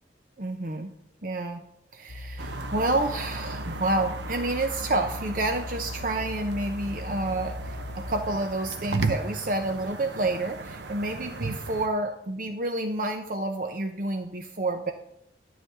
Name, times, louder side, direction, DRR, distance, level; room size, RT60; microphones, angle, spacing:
voice 1, 0.4-0.9 1.2-1.6 1.9-14.9, right 2 dB, 45° right, 5 dB, 0.7 m, -29 dB
sound 1, 2.1-8.4, left 2 dB, 55° left, 0.5 m, -38 dB
sound 2, 2.4-11.9, right 3 dB, 75° right, 0.9 m, -36 dB
12.0 x 4.1 x 7.1 m, 0.75 s
head